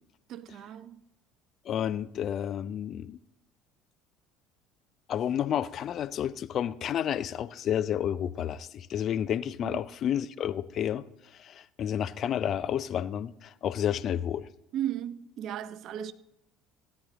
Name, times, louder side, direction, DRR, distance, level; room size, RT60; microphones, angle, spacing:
voice 1, 0.3-1.0 9.6-9.8 14.7-16.1, right 11 dB, 50° right, 0.6 m, -35 dB
voice 2, 1.6-3.2 5.1-14.5, left 9 dB, 45° left, 0.5 m, -31 dB
16.5 x 9.5 x 3.7 m
figure-of-eight pair, 60°, 0 cm